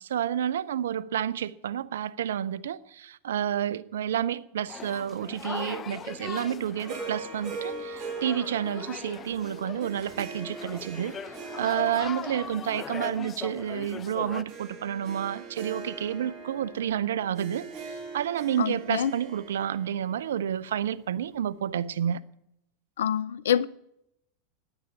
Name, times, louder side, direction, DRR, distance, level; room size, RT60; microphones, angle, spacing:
voice 1, 0.0-11.2 11.6-22.2, right 10 dB, 75° right, 0.7 m, -30 dB
sound 1, 4.7-14.4, left 7 dB, 30° left, 1.0 m, -40 dB
Harp, 6.9-21.3, right 4 dB, 45° right, 5.3 m, -42 dB
voice 2, 18.6-19.1 23.0-23.7, left 9 dB, 75° left, 0.6 m, -26 dB
16.0 x 10.0 x 8.3 m
hypercardioid pair, 95°, 0 cm